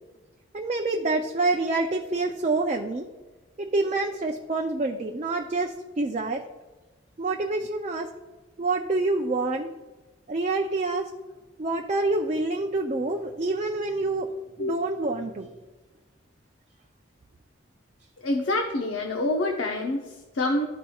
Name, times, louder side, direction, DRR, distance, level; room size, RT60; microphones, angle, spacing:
voice 1, 0.5-3.1 3.6-6.4 7.2-8.1 8.6-9.7 10.3-11.1 11.6-14.3 14.6-15.5, right 2 dB, 35° right, 2 dB, 0.4 m, -27 dB
voice 2, 18.2-20.7, left 2 dB, 80° left, 1 dB, 0.7 m, -27 dB
12.5 x 4.3 x 2.3 m, 1.2 s
head